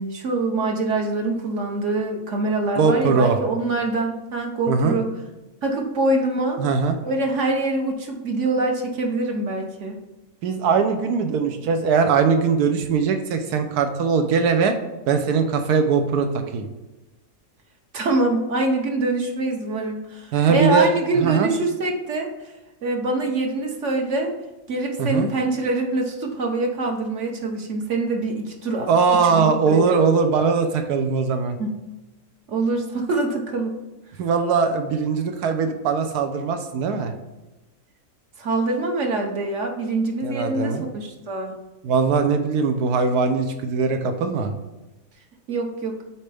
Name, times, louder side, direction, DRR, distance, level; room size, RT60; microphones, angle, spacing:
voice 1, 0.0-5.1 5.6-6.6 7.0-10.0 17.9-22.3 22.8-24.3 24.7-28.9 29.2-30.0 31.6-31.8 32.5-33.8 38.4-41.5 45.5-46.0, right 2 dB, 55° right, 2 dB, 1.2 m, -24 dB
voice 2, 2.8-3.4 4.7-5.0 6.6-6.9 10.4-14.7 15.1-16.7 20.3-21.5 25.0-25.3 28.9-31.6 34.2-37.1 40.2-40.8 41.8-44.5, right 5 dB, 85° right, 6 dB, 1.2 m, -20 dB
7.7 x 4.3 x 3.4 m, 1.1 s
omnidirectional pair, 1.6 m